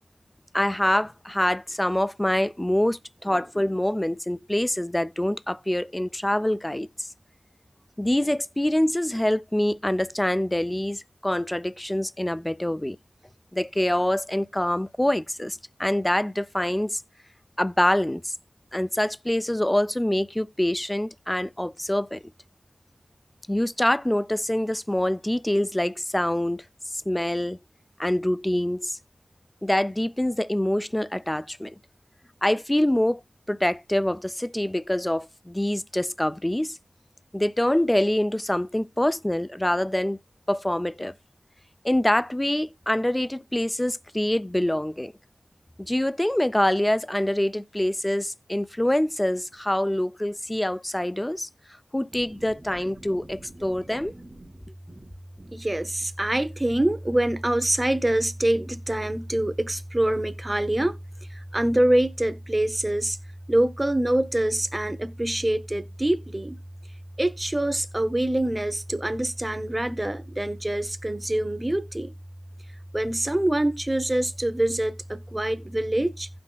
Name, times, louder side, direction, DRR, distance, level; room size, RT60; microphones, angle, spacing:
voice 1, 0.5-7.1 8.0-13.0 13.5-17.0 17.6-18.3 18.7-22.2 23.5-26.6 26.9-27.6 28.0-29.0 29.6-31.7 32.4-33.2 33.5-36.8 37.3-40.2 40.5-41.1 41.8-45.1 45.8-51.5 51.9-54.1, left 1 dB, 15° left, 0.4 m, -25 dB
voice 2, 52.9-54.5 54.9-55.1 55.4-61.0 61.3-63.2 63.5-66.6 67.2-72.1 72.9-76.3, right 1 dB, 25° right, 0.8 m, -25 dB
16.0 x 6.0 x 2.2 m
wide cardioid pair, 65°, 0 cm